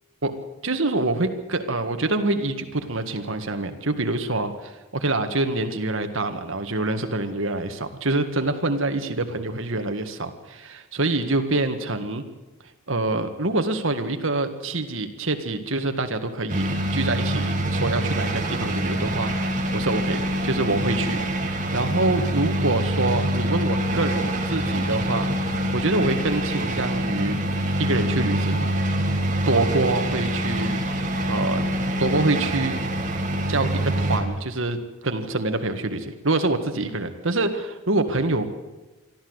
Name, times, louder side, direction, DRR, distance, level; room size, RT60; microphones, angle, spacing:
voice 1, 0.6-12.2 12.9-25.3 25.7-27.4 27.8-28.6 29.5-31.6 32.0-32.8 33.5-34.8 35.0-38.5, right 2 dB, 65° right, 7 dB, 1.8 m, -26 dB
sound 1, 16.5-34.2, right 1 dB, 35° right, 2.4 m, -25 dB
23.0 x 14.0 x 8.1 m, 1.1 s
head